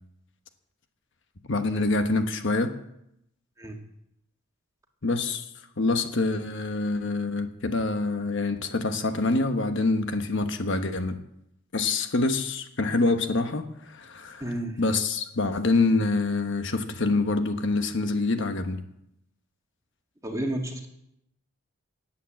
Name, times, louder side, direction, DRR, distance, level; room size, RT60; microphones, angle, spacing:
voice 1, 1.5-2.7 5.0-5.4 5.8-11.2 11.7-18.8, left 3 dB, 55° left, 7 dB, 1.1 m, -26 dB
voice 2, 14.4-14.7 20.2-20.9, right 1 dB, 15° right, 2 dB, 1.9 m, -31 dB
17.5 x 8.8 x 7.6 m, 0.79 s
head